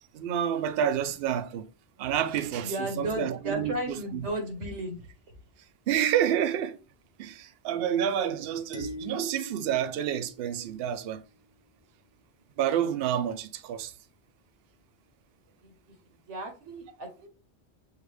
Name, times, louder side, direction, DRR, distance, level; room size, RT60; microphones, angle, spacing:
voice 1, 0.1-1.7 2.0-4.3 5.9-6.8 7.2-11.2 12.6-13.9, right 9 dB, 65° right, 0.7 m, -29 dB
voice 2, 2.6-5.0 15.6-15.7 16.3-17.3, right 1 dB, 90° right, 1.5 m, -34 dB
sound 1, 8.7-11.1, left 1 dB, 25° right, 0.8 m, -43 dB
6.6 x 2.5 x 3.2 m
omnidirectional pair, 1.2 m